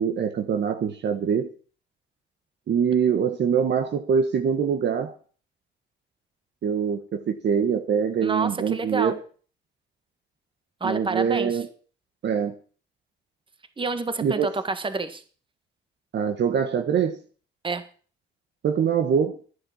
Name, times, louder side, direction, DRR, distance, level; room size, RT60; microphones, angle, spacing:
voice 1, 0.0-1.5 2.7-5.2 6.6-9.2 10.8-11.7 12.2-12.5 14.2-14.5 16.1-17.2 18.6-19.4, right 7 dB, 60° right, 7 dB, 1.3 m, -24 dB
voice 2, 8.2-9.2 10.8-11.6 13.8-15.2 17.6-17.8, right 3 dB, 25° right, 9 dB, 1.6 m, -28 dB
11.5 x 9.7 x 7.1 m, 0.42 s
cardioid pair, 90°, 20 cm